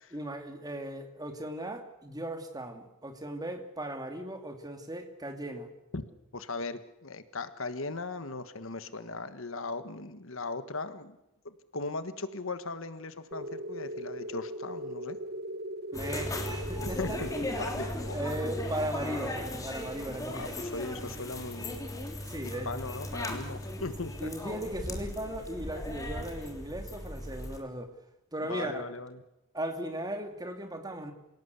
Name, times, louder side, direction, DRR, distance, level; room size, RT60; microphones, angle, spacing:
voice 1, 0.1-5.7 15.9-17.0 18.1-20.6 22.2-22.7 24.2-27.9 28.3-28.8 29.5-31.1, right 1 dB, 20° right, 6 dB, 2.6 m, -37 dB
voice 2, 6.3-11.2 11.4-15.2 16.8-18.2 20.3-22.0 22.4-24.3 28.5-29.2, left 3 dB, 65° left, 11 dB, 1.5 m, -38 dB
sound 1, 13.3-21.6, right 1 dB, 45° right, 1.1 m, -41 dB
sound 2, 15.9-27.6, left 1 dB, 15° left, 3.1 m, -37 dB
27.5 x 17.5 x 8.2 m, 0.92 s
head